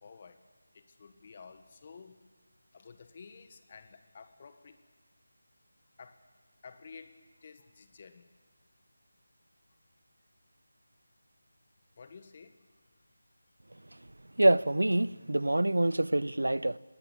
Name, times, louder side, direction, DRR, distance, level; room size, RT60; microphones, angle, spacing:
voice 1, 0.0-0.4 0.7-2.2 2.7-4.8 6.0-6.2 6.6-8.3 12.0-12.6, left 5 dB, 35° left, 1.4 m, -52 dB
voice 2, 14.4-16.8, right 1 dB, 85° right, 0.6 m, -26 dB
19.5 x 17.5 x 10.0 m
figure-of-eight pair, 165°, 0 cm